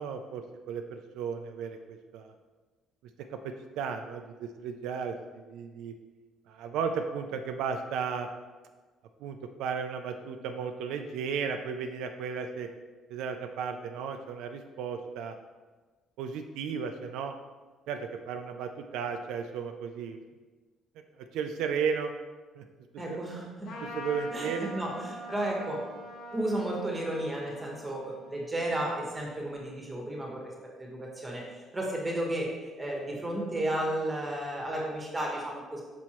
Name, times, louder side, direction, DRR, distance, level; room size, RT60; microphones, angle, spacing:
voice 1, 0.0-2.3 3.3-3.4 3.8-5.9 6.5-8.3 9.2-12.7 13.1-15.3 16.2-17.3 17.9-20.2 21.3-22.1 22.6-22.7 23.1-23.2 23.8-24.8, right 6 dB, 75° right, 6 dB, 0.3 m, -34 dB
voice 2, 23.0-23.7 24.3-25.9 26.3-35.8, right 1 dB, 10° right, -2 dB, 1.1 m, -33 dB
Trumpet, 23.6-29.5, equal, 85° left, 1.6 m, -44 dB
6.2 x 5.2 x 2.9 m, 1.3 s
cardioid pair, 180°, 0 cm